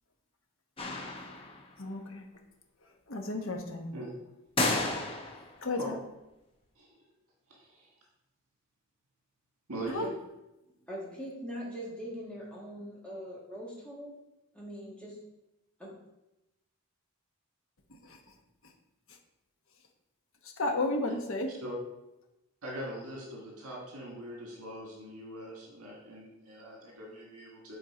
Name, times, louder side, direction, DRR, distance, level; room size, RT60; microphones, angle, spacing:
sound 1, 0.8-1.7 4.6-5.6, left 2 dB, 25° left, 0.9 m, -32 dB
voice 1, 1.8-2.3 3.1-3.9 5.6-6.0 9.9-10.1 18.0-18.2 20.6-21.5, left 2 dB, 65° left, 3 dB, 1.1 m, -32 dB
voice 2, 7.5-7.9 9.7-10.1 21.6-21.7 22.6-27.8, right 1 dB, 80° right, -3 dB, 1.7 m, -42 dB
voice 3, 10.7-14.1 14.5-15.2 15.8-15.9, equal, 5° left, -5 dB, 1.7 m, -42 dB
8.1 x 4.4 x 4.3 m, 0.94 s
head